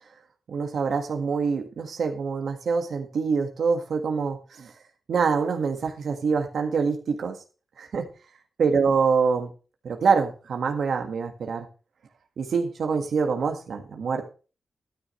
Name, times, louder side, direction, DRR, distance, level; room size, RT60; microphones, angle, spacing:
voice 1, 0.5-4.7 5.1-7.4 7.8-8.1 8.6-9.5 9.8-11.7 12.4-14.3, right 5 dB, 80° right, 4 dB, 1.7 m, -25 dB
13.5 x 10.0 x 3.2 m, 0.34 s
wide cardioid pair, 95°, 0 cm